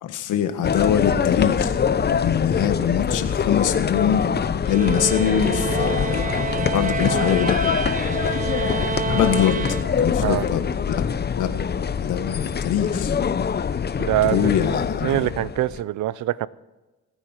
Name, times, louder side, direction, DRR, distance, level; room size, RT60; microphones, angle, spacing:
voice 1, 0.0-1.7 2.1-4.3 4.6-6.2 6.7-7.6 9.1-11.1 11.4-11.5 12.0-13.1 14.2-15.3, left 9 dB, 85° left, 1.6 m, -23 dB
sound 1, 0.6-15.8, left 7 dB, 35° left, 0.8 m, -24 dB
sound 2, 4.6-10.3, right 6 dB, 25° right, 0.5 m, -29 dB
voice 2, 14.0-14.5 15.0-16.5, right 15 dB, 75° right, 0.6 m, -23 dB
26.0 x 9.8 x 4.5 m
cardioid pair, 90°, 30 cm